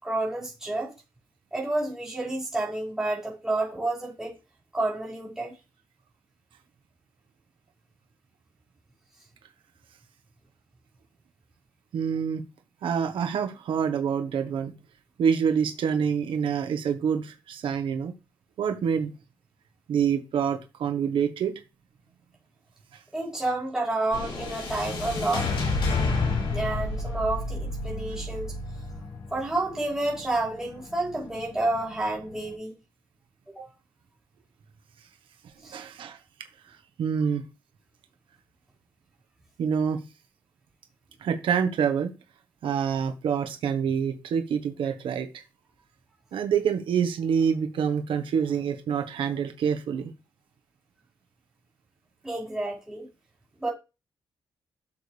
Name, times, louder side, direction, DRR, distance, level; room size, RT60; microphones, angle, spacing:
voice 1, 0.0-0.9 1.5-4.3 4.7-5.5 23.1-25.5 26.5-28.5 29.3-32.7 33.6-33.7 35.6-35.8 52.2-53.1 53.6-53.7, right 2 dB, 5° right, 5.3 m, -29 dB
voice 2, 11.9-12.4 12.8-14.7 15.2-18.1 18.6-19.1 19.9-21.5 35.7-36.2 36.7-37.4 39.6-40.0 41.2-42.1 42.6-45.3 46.3-50.1, right 7 dB, 90° right, 1.4 m, -26 dB
sound 1, 24.1-32.5, left 3 dB, 85° left, 5.2 m, -31 dB
12.5 x 7.1 x 3.4 m
wide cardioid pair, 160°, 8 cm